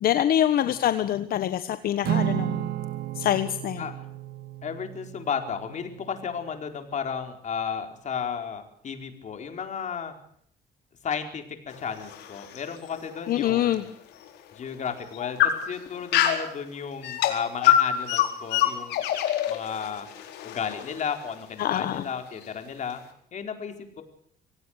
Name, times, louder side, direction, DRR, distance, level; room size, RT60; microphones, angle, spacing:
voice 1, 0.0-2.7 3.2-3.8 13.3-13.8 21.6-22.0, left 11 dB, 60° left, 11 dB, 1.2 m, -25 dB
Acoustic guitar / Strum, 2.0-6.5, right 12 dB, 70° right, 1.7 m, -32 dB
voice 2, 3.8-4.1 4.6-10.1 11.0-13.9 14.5-19.0 19.5-20.1 20.4-23.0 23.3-24.0, left 7 dB, 45° left, 6 dB, 4.5 m, -33 dB
sound 1, 11.7-13.8 14.3-14.4 15.0-16.5 17.0-21.3, left 11 dB, 80° left, 4.3 m, -25 dB
26.0 x 17.5 x 6.5 m, 0.66 s
cardioid pair, 110°, 17 cm